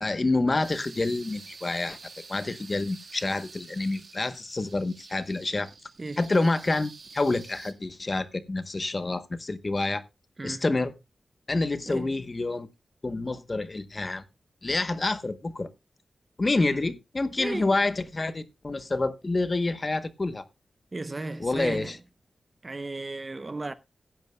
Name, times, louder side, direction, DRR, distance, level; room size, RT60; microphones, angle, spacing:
voice 1, 0.0-2.0 2.3-5.7 6.2-10.0 10.4-10.9 11.5-12.7 13.0-14.2 14.6-15.7 16.4-20.4 21.4-21.9, left 2 dB, 30° left, 0.9 m, -28 dB
sound 1, 0.6-7.7, right 4 dB, 55° right, 1.6 m, -48 dB
voice 2, 6.0-6.3 10.4-10.6 11.9-12.1 16.7-16.9 17.4-17.8 20.9-22.0 22.6-23.7, right 2 dB, 30° right, 0.7 m, -35 dB
16.0 x 10.5 x 2.2 m
wide cardioid pair, 135°, 0 cm